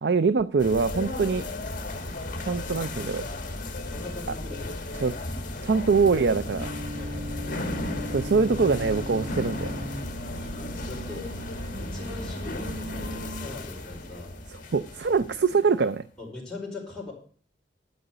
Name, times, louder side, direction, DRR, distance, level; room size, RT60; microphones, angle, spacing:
voice 1, 0.0-1.5 2.4-3.3 5.0-5.1 5.6-6.7 8.1-9.9 14.5-16.0, right 4 dB, 70° right, 13 dB, 0.5 m, -24 dB
sound 1, 0.6-15.9, left 2 dB, 50° left, 1.8 m, -35 dB
voice 2, 3.9-4.8 7.0-7.9 10.3-11.3 11.8-14.4 16.2-17.1, left 2 dB, 5° left, -4 dB, 4.9 m, -41 dB
sound 2, 6.6-13.5, equal, 50° right, 1.3 m, -38 dB
12.0 x 5.2 x 7.8 m, 0.43 s
head